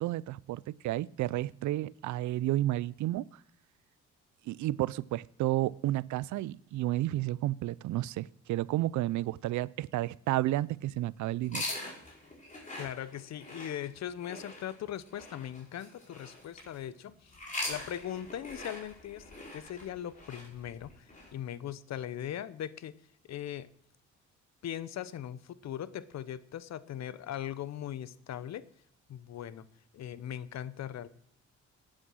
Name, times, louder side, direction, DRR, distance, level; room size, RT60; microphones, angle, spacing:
voice 1, 0.0-3.3 4.5-11.6, right 15 dB, 75° right, 0.5 m, -31 dB
sound 1, 11.4-16.8 17.3-21.3, left 2 dB, 25° left, 4.9 m, -42 dB
voice 2, 12.8-17.3 17.7-22.9 23.3-23.7 24.6-28.7 29.1-29.6 29.9-31.1, left 10 dB, 60° left, 0.8 m, -39 dB
11.0 x 8.8 x 6.3 m
cardioid pair, 90°, 30 cm